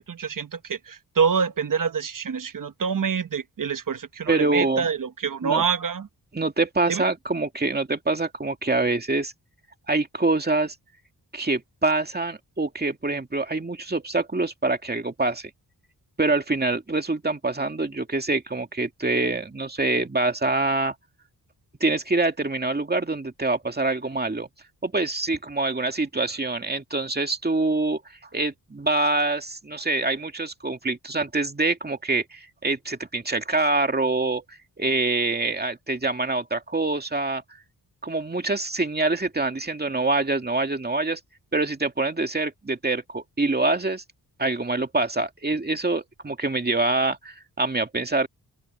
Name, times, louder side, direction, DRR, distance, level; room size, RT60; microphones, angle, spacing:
voice 1, 0.0-6.1 6.9-7.0, right 6 dB, 55° right, 1.2 m, -26 dB
voice 2, 4.3-4.9 5.4-5.6 6.3-9.3 9.9-10.7 11.3-15.5 16.2-20.9 21.8-24.5 24.8-28.0 28.3-37.4 38.0-41.2 41.5-44.0 44.4-48.3, right 2 dB, 25° right, 2.3 m, -25 dB
open air
cardioid pair, 80°, 39 cm